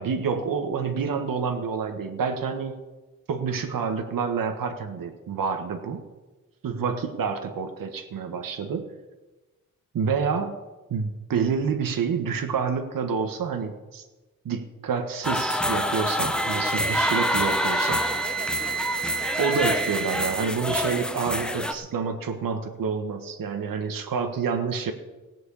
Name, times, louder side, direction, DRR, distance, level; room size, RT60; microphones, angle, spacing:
voice 1, 0.0-2.8 3.3-6.1 6.6-8.9 9.9-10.6 10.9-14.0 14.4-18.0 19.4-24.9, right 5 dB, 85° right, 6 dB, 1.4 m, -28 dB
sound 1, 15.2-21.7, left 1 dB, 5° left, 0.8 m, -27 dB
Wind instrument woodwind instrument, 16.3-20.5, right 6 dB, 30° right, 0.7 m, -31 dB
17.0 x 6.3 x 8.4 m, 1.2 s
wide cardioid pair, 150°, 33 cm